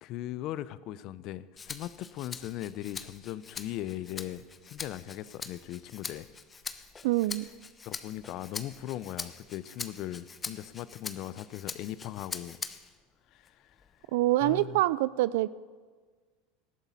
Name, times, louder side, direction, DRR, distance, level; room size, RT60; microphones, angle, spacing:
voice 1, 0.0-6.3 7.8-12.6 13.3-13.8 14.4-14.8, left 13 dB, 55° left, 17 dB, 0.5 m, -39 dB
Rattle (instrument), 1.6-13.0 13.5-14.6, left 5 dB, 25° left, 0.8 m, -43 dB
voice 2, 7.0-7.4 14.1-15.5, right 17 dB, 75° right, 18 dB, 0.3 m, -25 dB
18.5 x 12.0 x 4.1 m, 1.5 s
hypercardioid pair, 95°, 0 cm